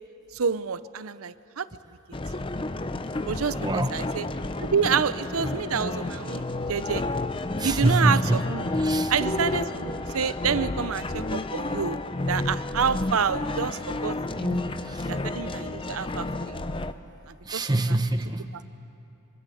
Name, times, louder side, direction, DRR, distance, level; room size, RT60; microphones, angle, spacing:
voice 1, 0.3-1.7 3.2-4.3 4.6-7.0 7.6-8.7 9.1-12.0 12.3-14.5 15.1-16.5 17.3-17.7, right 6 dB, 85° right, 15 dB, 0.7 m, -28 dB
sound 1, 2.1-16.9, left 2 dB, 25° left, 0.6 m, -30 dB
voice 2, 3.6-3.9 7.6-8.4 8.7-9.1 14.3-15.1 17.4-18.6, right 2 dB, 20° right, 9 dB, 0.9 m, -26 dB
25.0 x 24.5 x 7.0 m, 2.9 s
head